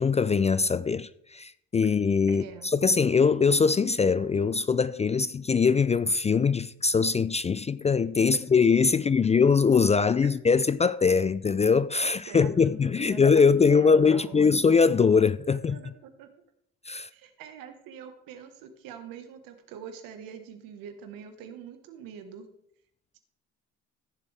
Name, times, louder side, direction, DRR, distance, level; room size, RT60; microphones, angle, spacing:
voice 1, 0.0-15.8 16.9-17.1, left 5 dB, 20° left, 0.3 m, -22 dB
voice 2, 2.3-2.7 8.3-8.4 10.2-10.3 12.3-14.5 15.5-16.3 17.1-22.5, right 8 dB, 80° right, 1.4 m, -45 dB
15.0 x 7.0 x 3.4 m
supercardioid pair, 60°, 34 cm